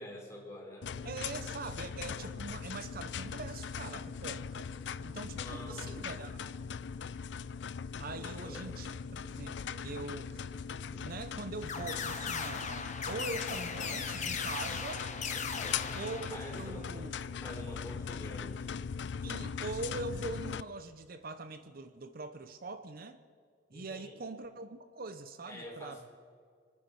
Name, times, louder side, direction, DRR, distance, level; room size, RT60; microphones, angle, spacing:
voice 1, 0.0-0.9 5.3-6.0 8.1-8.7 15.3-16.0 16.3-18.8 23.7-24.2 25.5-26.0, left 1 dB, 15° left, -1 dB, 3.8 m, -47 dB
sound 1, 0.8-20.6, left 6 dB, 70° left, 0.4 m, -40 dB
voice 2, 1.0-4.7 5.0-6.5 8.0-8.9 9.2-10.4 10.9-15.1 15.9-17.1 19.2-23.2 23.7-26.0, right 3 dB, 55° right, 11 dB, 0.7 m, -43 dB
sound 2, 11.7-16.8, left 6 dB, 40° left, 1.2 m, -38 dB
28.5 x 10.0 x 4.8 m, 2.1 s
head